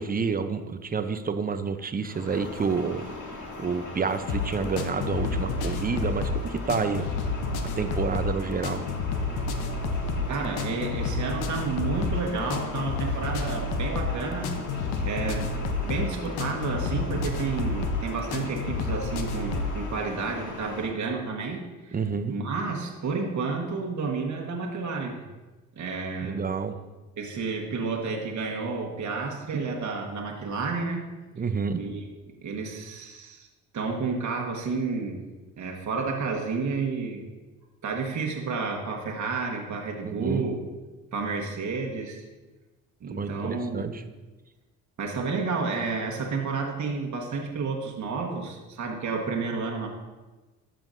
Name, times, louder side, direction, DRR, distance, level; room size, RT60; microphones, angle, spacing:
voice 1, 0.0-3.1 3.6-7.0 7.8-8.9 21.9-22.3 26.2-26.7 31.3-31.8 40.0-40.4 43.1-44.0, right 5 dB, 25° right, 10 dB, 0.6 m, -29 dB
sound 1, 2.0-20.9, left 2 dB, 50° left, 2.0 m, -39 dB
sound 2, 4.3-19.8, left 3 dB, 70° left, 0.9 m, -30 dB
voice 2, 10.3-14.5 15.0-15.5 15.8-22.0 22.3-25.2 25.8-26.4 27.2-31.0 31.4-31.5 31.7-33.5 33.7-35.2 35.6-37.2 37.8-40.6 41.1-42.2 43.0-43.9 45.0-49.9, right 4 dB, 45° right, 1 dB, 1.3 m, -31 dB
12.5 x 5.7 x 2.6 m, 1.2 s
supercardioid pair, 70°, 39 cm